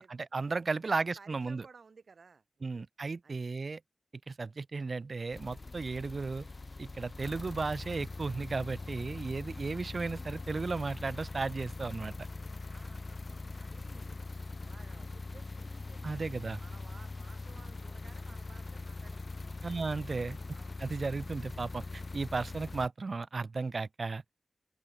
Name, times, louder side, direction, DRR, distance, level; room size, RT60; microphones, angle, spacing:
voice 1, 0.0-1.6 2.6-3.8 4.3-6.4 6.8-12.1 16.0-16.6 19.6-20.4 20.8-24.2, right 4 dB, 55° right, 0.5 m, -35 dB
voice 2, 0.7-2.9 3.2-3.4 12.7-14.2 14.6-16.2 16.6-19.7 20.5-20.8, right 5 dB, 70° right, 5.4 m, -57 dB
sound 1, 5.3-22.9, left 3 dB, 45° left, 1.7 m, -42 dB
open air
wide cardioid pair, 65°, 0 cm